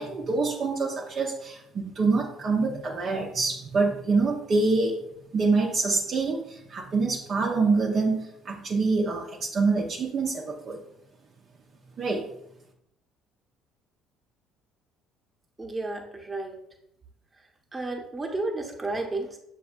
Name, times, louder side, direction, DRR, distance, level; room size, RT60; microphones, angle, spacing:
voice 1, 0.0-5.0 5.3-10.8 12.0-12.3, right 3 dB, 45° right, -1 dB, 0.6 m, -26 dB
voice 2, 15.6-16.5 17.7-19.4, right 2 dB, 20° right, 1 dB, 1.0 m, -32 dB
6.8 x 2.6 x 2.5 m, 0.75 s
hypercardioid pair, 55°, 0 cm